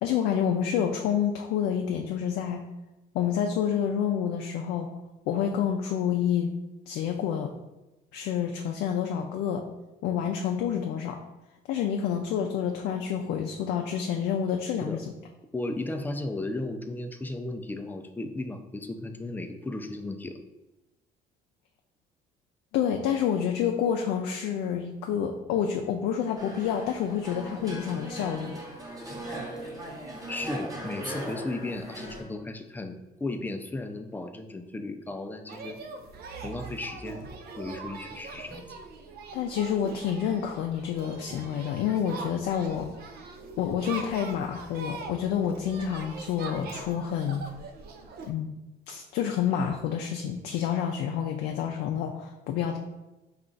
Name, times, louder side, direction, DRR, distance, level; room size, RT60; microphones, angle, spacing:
voice 1, 0.0-2.6 3.1-4.9 5.3-6.5 6.9-7.5 8.1-9.6 10.0-11.2 11.7-15.0 22.7-28.6 39.3-42.9 43.6-47.4 48.3-48.5 48.9-52.8, left 8 dB, 80° left, 3 dB, 0.4 m, -28 dB
voice 2, 15.5-20.4 30.3-35.8 36.4-37.3 37.5-38.7, left 2 dB, 10° left, 6 dB, 0.4 m, -35 dB
sound 1, 26.4-32.2, right 1 dB, 20° right, 1.0 m, -39 dB
sound 2, 35.5-48.3, right 4 dB, 65° right, 0.5 m, -42 dB
4.3 x 2.4 x 3.8 m, 1.0 s
cardioid pair, 110°, 17 cm